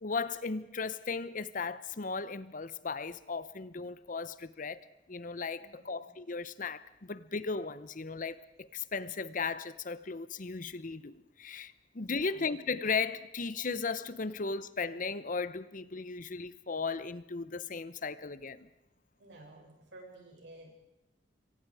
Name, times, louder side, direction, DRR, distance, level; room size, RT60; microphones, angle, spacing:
voice 1, 0.0-4.8 5.1-18.7, left 4 dB, 50° left, 0.9 m, -36 dB
voice 2, 5.5-6.1 12.1-12.5 19.2-20.7, right 2 dB, 85° right, 6.9 m, -53 dB
26.5 x 23.5 x 4.9 m
head